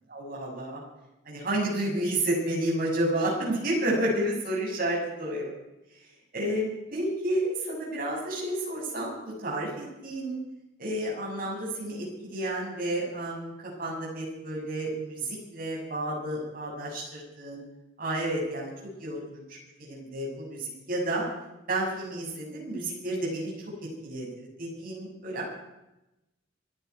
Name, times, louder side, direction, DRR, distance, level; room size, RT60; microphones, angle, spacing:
voice 1, 0.1-0.8 1.2-5.5 6.3-10.4 10.8-17.6 18.0-18.7 19.0-21.2 21.7-23.5 24.0-25.5, right 1 dB, 50° right, -3 dB, 6.7 m, -31 dB
26.5 x 10.5 x 4.7 m, 0.93 s
head